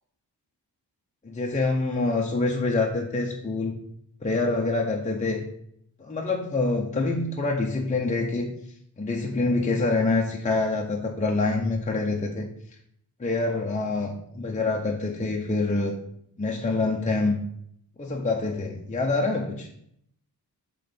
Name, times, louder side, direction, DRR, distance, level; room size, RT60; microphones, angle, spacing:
voice 1, 1.2-3.7 4.2-5.4 6.0-8.5 9.0-12.5 13.2-16.0 16.4-17.4 18.0-19.7, left 3 dB, 20° left, -1 dB, 0.6 m, -26 dB
6.0 x 3.8 x 5.2 m, 0.71 s
wide cardioid pair, 180°, 40 cm